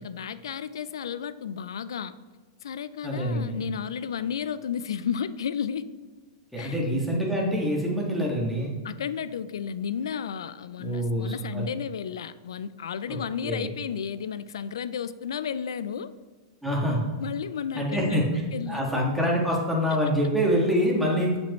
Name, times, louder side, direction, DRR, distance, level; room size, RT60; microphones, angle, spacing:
voice 1, 0.0-2.1 2.6-5.9 6.6-6.8 8.8-16.1 17.2-18.8, left 7 dB, 85° left, 14 dB, 0.3 m, -33 dB
voice 2, 3.0-3.6 6.5-8.7 10.8-11.6 13.1-13.2 13.4-13.7 16.6-17.0 17.7-18.2 18.7-21.4, equal, ahead, -3 dB, 1.6 m, -25 dB
7.0 x 5.2 x 3.0 m, 1.4 s
hypercardioid pair, 120°, 2 cm